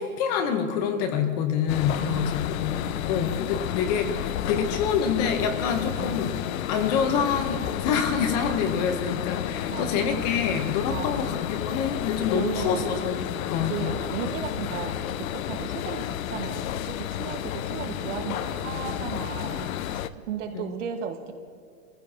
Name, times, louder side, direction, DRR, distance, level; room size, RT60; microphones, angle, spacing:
voice 1, 0.0-2.7 3.1-6.3 6.7-13.9 17.2-17.3 20.5-20.7, left 7 dB, 30° left, 7 dB, 1.0 m, -27 dB
sound 1, 1.7-20.1, left 11 dB, 85° left, 0.7 m, -31 dB
voice 2, 2.0-2.5 2.8-3.5 6.0-6.5 9.7-10.1 10.9-11.3 12.3-13.1 13.7-21.3, right 8 dB, 65° right, 5 dB, 1.7 m, -36 dB
25.0 x 15.0 x 2.9 m, 2.3 s
supercardioid pair, 170°, 41 cm